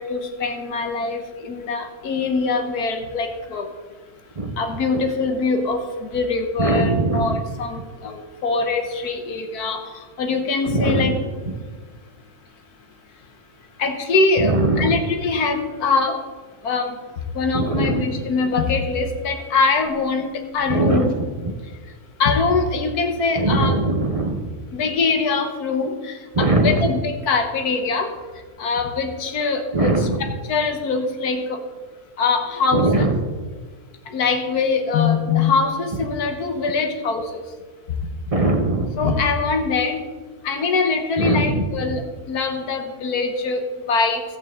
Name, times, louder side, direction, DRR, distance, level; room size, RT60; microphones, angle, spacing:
voice 1, 0.0-3.7 4.6-11.2 13.8-16.2 16.6-17.0 17.3-21.1 22.2-23.8 24.7-28.1 28.6-31.6 32.2-33.1 34.1-37.4 39.0-40.0 40.4-44.2, left 4 dB, 85° left, 5 dB, 1.6 m, -23 dB
voice 2, 6.6-7.3 10.6-11.2 14.4-15.0 17.5-18.0 20.7-21.1 23.4-24.4 26.4-26.9 29.7-30.2 32.7-33.1 38.3-38.9 41.2-41.6, right 2 dB, 35° right, 4 dB, 0.6 m, -20 dB
15.0 x 7.9 x 3.7 m, 1.5 s
omnidirectional pair, 1.6 m